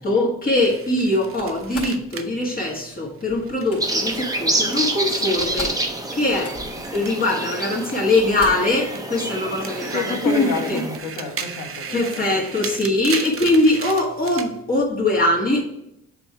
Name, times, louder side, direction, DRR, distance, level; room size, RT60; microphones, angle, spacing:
voice 1, 0.0-5.7 6.1-6.6 6.9-10.8 11.9-15.6, left 2 dB, 30° left, -2 dB, 1.5 m, -22 dB
sound 1, 0.6-5.2 5.5-8.4 8.8-14.5, right 6 dB, 45° right, 0.7 m, -37 dB
Slam, 1.4-2.0 3.4-3.8 4.9-5.0 5.3-5.9 6.1-6.9 7.6-7.7 8.2-8.8, left 3 dB, 50° left, 1.9 m, -37 dB
sound 2, 3.8-11.0, right 2 dB, 10° right, 0.8 m, -27 dB
voice 2, 9.3-9.6 9.9-12.4, left 4 dB, 80° left, 2 dB, 1.4 m, -30 dB
6.7 x 3.5 x 4.5 m, 0.77 s
cardioid pair, 90°, 30 cm